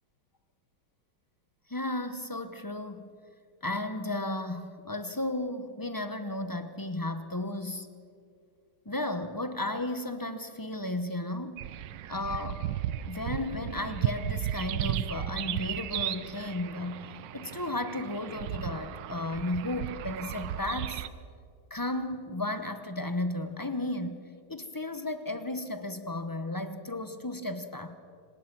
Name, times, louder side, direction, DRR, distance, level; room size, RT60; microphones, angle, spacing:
voice 1, 1.7-3.1 3.6-7.9 8.8-11.7 12.1-12.7 13.0-17.0 17.3-21.0 21.7-24.2 24.5-28.0, left 1 dB, 20° left, 9 dB, 0.6 m, -34 dB
sound 1, 11.6-21.1, right 12 dB, 85° right, 1.4 m, -35 dB
26.0 x 18.5 x 6.1 m, 2.3 s
omnidirectional pair, 1.9 m